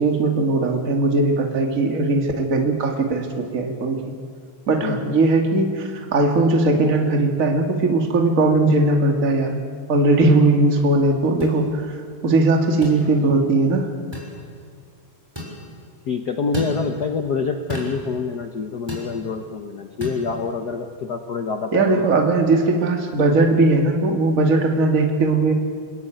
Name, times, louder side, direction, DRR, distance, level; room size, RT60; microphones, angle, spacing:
voice 1, 0.0-4.0 4.7-9.6 9.9-12.0 12.2-13.9 21.7-25.5, right 2 dB, 30° right, 2 dB, 2.4 m, -19 dB
voice 2, 4.8-5.1 16.1-22.2, left 4 dB, 65° left, 6 dB, 0.9 m, -27 dB
sound 1, 11.4-11.6 12.8-13.0 14.1-14.3 15.4-15.6 16.5-16.8 17.7-18.0 18.9-19.1 20.0-20.2, left 1 dB, 10° right, 6.5 m, -31 dB
29.0 x 20.5 x 9.2 m, 2.2 s
omnidirectional pair, 3.4 m